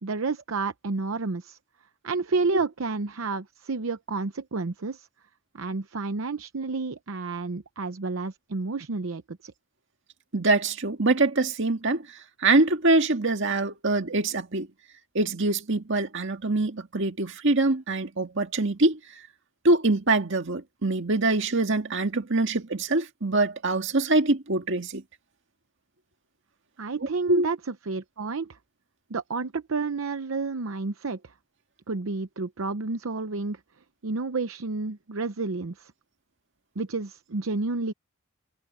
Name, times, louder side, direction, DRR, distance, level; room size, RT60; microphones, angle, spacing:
voice 1, 0.0-1.6 2.0-5.1 5.5-9.5 26.8-28.6 29.1-31.3 31.9-33.6 34.0-35.9 36.8-37.9, right 3 dB, 80° right, 0.8 m, -30 dB
voice 2, 10.3-12.1 12.4-14.7 15.1-19.0 19.6-25.0 27.0-27.5, right 2 dB, 65° right, 1.9 m, -24 dB
head